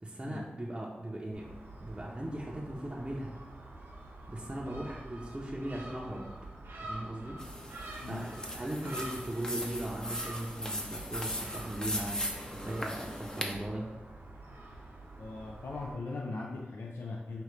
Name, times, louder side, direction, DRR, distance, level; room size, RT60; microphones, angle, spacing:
voice 1, 0.0-1.5 1.8-3.4 4.3-6.3 6.8-7.4 8.1-13.9, right 1 dB, 25° right, -3 dB, 0.6 m, -38 dB
Gull seagull, 1.3-15.9, right 2 dB, 80° right, 0.8 m, -47 dB
sound 1, 7.4-13.5, left 1 dB, 20° left, 0.6 m, -38 dB
voice 2, 8.0-8.5 15.2-17.4, left 3 dB, 80° left, 0 dB, 0.4 m, -40 dB
5.0 x 2.8 x 3.2 m, 1.1 s
wide cardioid pair, 60°, 4 cm